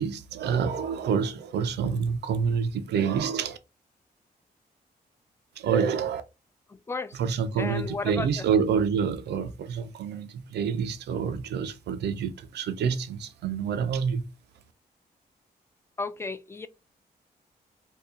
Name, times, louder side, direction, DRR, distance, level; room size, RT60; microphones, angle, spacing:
voice 1, 0.0-3.6 5.6-6.2 7.2-14.2, right 6 dB, 85° right, 0.5 m, -27 dB
voice 2, 6.7-7.2 7.6-8.5 16.0-16.7, left 3 dB, 15° left, 0.4 m, -34 dB
2.7 x 2.2 x 3.7 m
cardioid pair, 60°, 17 cm